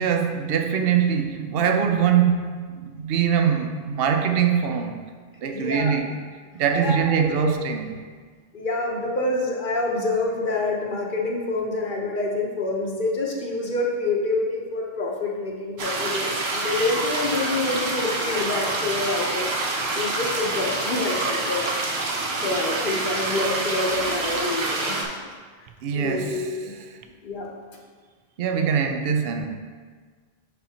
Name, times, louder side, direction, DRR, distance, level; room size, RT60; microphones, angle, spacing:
voice 1, 0.0-5.0 5.4-6.1 6.5-7.9 25.8-26.4 28.4-29.5, right 7 dB, 70° right, 0.8 m, -23 dB
voice 2, 5.5-6.0 6.7-7.5 8.5-19.5 19.9-21.7 22.4-25.2 25.9-26.7 27.2-27.5, left 2 dB, 55° left, 1.0 m, -27 dB
sound 1, 15.8-25.0, right 2 dB, 90° right, 1.2 m, -27 dB
11.0 x 4.2 x 2.8 m
omnidirectional pair, 1.0 m